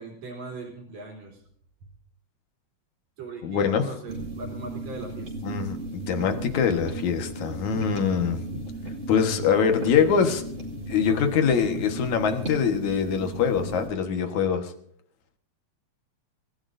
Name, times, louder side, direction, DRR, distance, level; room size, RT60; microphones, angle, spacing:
voice 1, 0.0-1.4 3.2-5.3, right 4 dB, 65° right, -2 dB, 4.5 m, -39 dB
voice 2, 3.4-3.9 5.4-5.8 6.1-8.4 9.1-10.4 10.9-14.7, left 7 dB, 70° left, 6 dB, 2.9 m, -23 dB
sound 1, 4.1-13.9, right 2 dB, 25° right, 2.3 m, -35 dB
26.5 x 15.5 x 2.7 m, 0.66 s
omnidirectional pair, 3.4 m